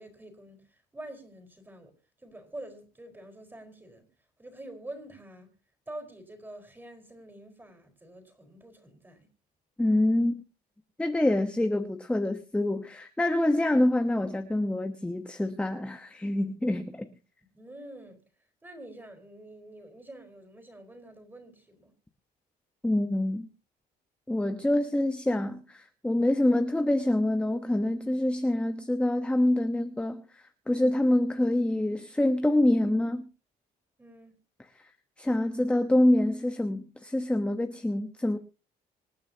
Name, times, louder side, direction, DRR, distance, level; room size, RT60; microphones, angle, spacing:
voice 1, 0.0-1.9 2.2-4.1 4.4-5.5 5.9-9.3 17.5-18.2 18.6-21.9 34.0-34.4, right 1 dB, 10° right, 4.6 m, -46 dB
voice 2, 9.8-10.4 11.0-17.1 22.8-23.5 24.3-33.3 34.8-34.9 35.2-38.4, left 1 dB, 5° left, 1.1 m, -26 dB
26.0 x 9.4 x 2.9 m
cardioid pair, 110°, 17 cm